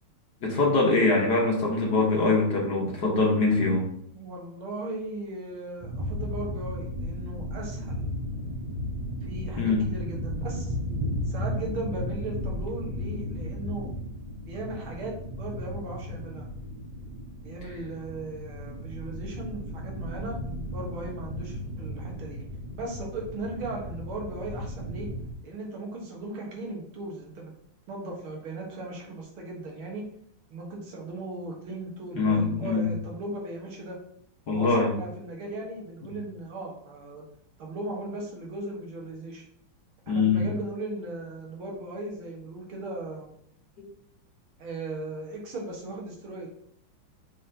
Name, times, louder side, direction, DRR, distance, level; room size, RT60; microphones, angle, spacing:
voice 1, 0.4-3.9 9.6-9.9 32.1-32.9 34.5-34.9 40.1-40.5 43.8-43.9, left 3 dB, 55° left, -1 dB, 1.8 m, -23 dB
voice 2, 4.1-8.1 9.2-10.7 11.3-13.9 14.5-16.5 17.4-20.4 20.7-22.5 22.7-25.1 25.4-27.5 27.9-30.1 30.5-34.0 34.5-37.2 37.6-39.4 40.1-43.3 44.6-46.5, right 2 dB, 80° right, -1 dB, 2.3 m, -37 dB
sound 1, 5.8-25.3, left 1 dB, 50° right, 0.5 m, -35 dB
6.3 x 5.6 x 2.8 m, 0.70 s
omnidirectional pair, 2.3 m